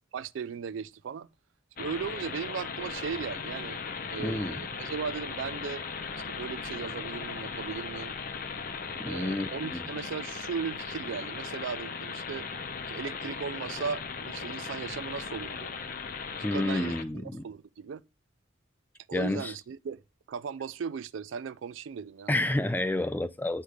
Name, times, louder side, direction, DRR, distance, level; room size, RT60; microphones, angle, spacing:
voice 1, 0.1-1.3 1.8-3.8 4.1-5.8 6.2-8.1 9.0-12.5 12.9-15.7 16.5-18.0 19.1-20.0 20.3-22.3, right 6 dB, 75° right, 0.4 m, -37 dB
sound 1, 1.8-17.0, left 5 dB, 45° left, 0.7 m, -38 dB
voice 2, 4.2-4.6 9.0-9.8 16.4-17.4 19.1-19.5 22.3-23.6, left 1 dB, 10° left, 0.3 m, -30 dB
8.2 x 3.2 x 4.9 m
head